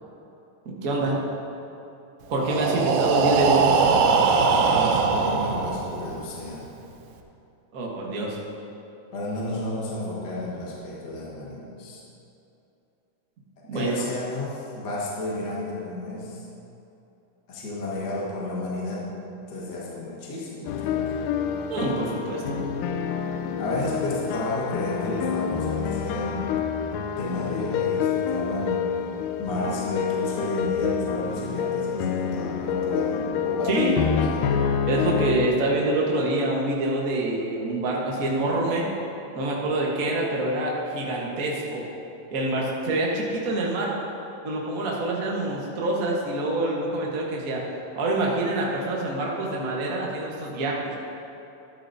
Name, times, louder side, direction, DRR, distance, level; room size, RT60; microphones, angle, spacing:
voice 1, 0.8-1.2 2.3-3.8 7.7-8.4 13.7-14.0 21.7-22.7 33.6-34.2 34.9-38.9 39.3-41.8 42.3-43.9 44.4-47.6 48.0-50.8, right 2 dB, 70° right, -3 dB, 0.8 m, -26 dB
Breathing, 2.3-6.2, right 5 dB, 85° right, 2.3 m, -21 dB
voice 2, 4.6-6.7 9.1-12.0 13.7-16.4 17.5-19.1 19.5-21.0 23.6-26.5 27.1-28.9 29.4-34.7, left 2 dB, 40° left, -6 dB, 1.8 m, -31 dB
sound 1, 20.7-35.5, left 8 dB, 85° left, 2.2 m, -27 dB
13.0 x 12.0 x 2.7 m, 2.9 s
omnidirectional pair, 3.7 m